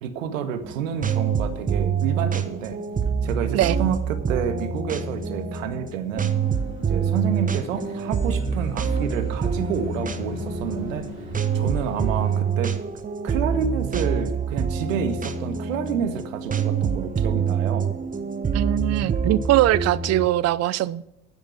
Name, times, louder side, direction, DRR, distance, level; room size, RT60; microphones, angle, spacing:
voice 1, 0.0-2.8 3.2-6.3 6.9-11.3 11.5-12.8 13.2-17.9, right 7 dB, 70° right, 9 dB, 1.8 m, -29 dB
sound 1, 0.6-20.3, right 6 dB, 20° right, 1.3 m, -26 dB
sound 2, 6.3-12.4, left 2 dB, 30° left, 4.5 m, -39 dB
voice 2, 18.5-21.0, right 14 dB, 40° right, 20 dB, 0.6 m, -21 dB
11.5 x 10.5 x 6.0 m, 0.83 s
figure-of-eight pair, 70°, 40 cm